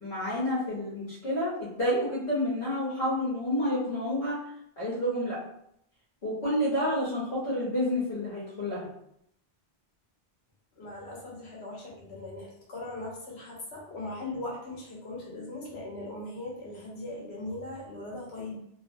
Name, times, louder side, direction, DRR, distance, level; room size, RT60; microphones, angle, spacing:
voice 1, 0.0-4.4 4.8-5.4 6.2-8.9, left 1 dB, 65° left, -9 dB, 1.2 m, -29 dB
voice 2, 10.8-18.6, left 2 dB, 85° left, -3 dB, 1.1 m, -39 dB
2.7 x 2.1 x 2.7 m, 0.74 s
omnidirectional pair, 1.1 m